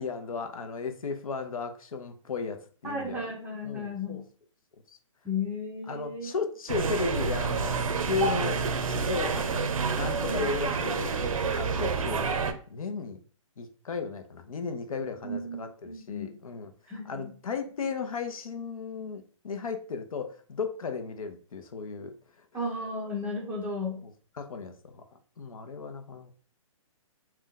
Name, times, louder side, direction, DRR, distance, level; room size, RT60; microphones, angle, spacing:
voice 1, 0.0-3.3 3.6-4.2 4.9-5.0 5.9-9.7 10.0-11.2 11.5-12.3 12.7-13.2 13.6-22.5 24.0-26.3, left 5 dB, 85° left, 6 dB, 0.6 m, -35 dB
voice 2, 2.8-4.2 5.2-6.3 10.3-10.5 15.2-16.3 16.9-17.3 22.5-24.0, left 2 dB, 10° right, -2 dB, 0.5 m, -34 dB
sound 1, 6.7-12.5, right 5 dB, 80° right, 0.5 m, -28 dB
2.6 x 2.2 x 3.7 m, 0.43 s
hypercardioid pair, 150°, 18 cm